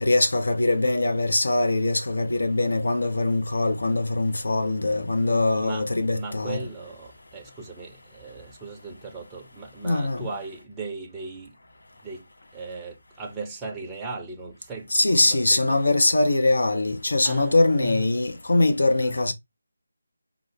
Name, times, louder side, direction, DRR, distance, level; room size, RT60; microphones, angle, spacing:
voice 1, 0.0-6.6 9.8-10.2 14.9-19.3, left 2 dB, 60° left, 0.6 m, -22 dB
voice 2, 6.1-11.5 12.0-12.2 12.5-14.9 15.1-15.8 17.2-18.1 19.0-19.2, right 3 dB, 10° right, 0.6 m, -37 dB
4.9 x 2.0 x 3.2 m
figure-of-eight pair, 160°, 0 cm